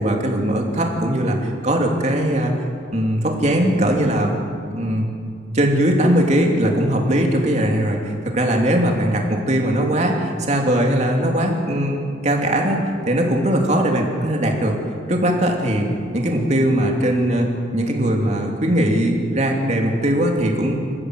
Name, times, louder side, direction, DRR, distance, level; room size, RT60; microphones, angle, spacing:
voice 1, 0.0-2.5 2.9-4.3 4.7-5.1 5.5-14.8 15.1-15.9 16.1-20.7, right 1 dB, 35° right, 1 dB, 2.9 m, -20 dB
27.0 x 14.5 x 7.7 m, 2.4 s
head